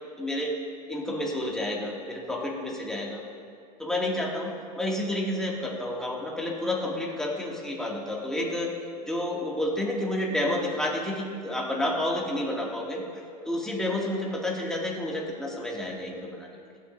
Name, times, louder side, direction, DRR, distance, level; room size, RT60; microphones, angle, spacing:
voice 1, 0.2-0.5 0.9-3.2 3.8-8.7 9.0-13.0 13.4-16.5, left 1 dB, 5° left, -3 dB, 2.3 m, -30 dB
22.0 x 7.8 x 2.7 m, 2.5 s
hypercardioid pair, 90°, 20 cm